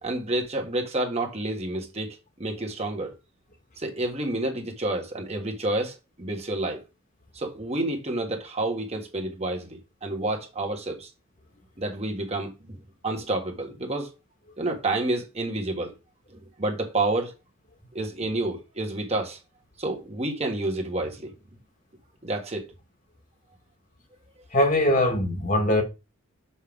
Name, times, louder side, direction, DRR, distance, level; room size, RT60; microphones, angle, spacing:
voice 1, 0.0-3.1 3.8-6.8 7.3-11.1 11.8-12.8 13.0-14.1 14.6-15.9 16.3-17.3 17.9-19.4 19.8-21.3 22.2-22.7, right 2 dB, 30° right, 1.3 m, -29 dB
voice 2, 24.5-25.8, left 1 dB, 40° left, 1.5 m, -21 dB
6.4 x 5.6 x 3.5 m
head